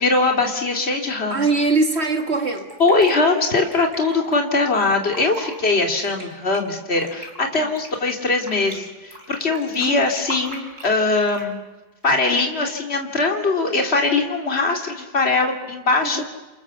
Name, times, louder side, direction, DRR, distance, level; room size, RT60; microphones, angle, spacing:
voice 1, 0.0-1.4 2.8-11.6 12.0-16.3, left 3 dB, 40° left, 3 dB, 3.0 m, -21 dB
voice 2, 1.3-2.7 7.6-7.7 9.8-10.0 16.0-16.3, right 3 dB, 40° right, 5 dB, 2.2 m, -22 dB
Fill (with liquid), 2.3-4.4 5.0-5.6 5.9-8.8 9.1-11.5 12.0-12.4, right 1 dB, 75° right, 5.1 m, -39 dB
29.5 x 27.5 x 7.2 m, 1.2 s
omnidirectional pair, 1.7 m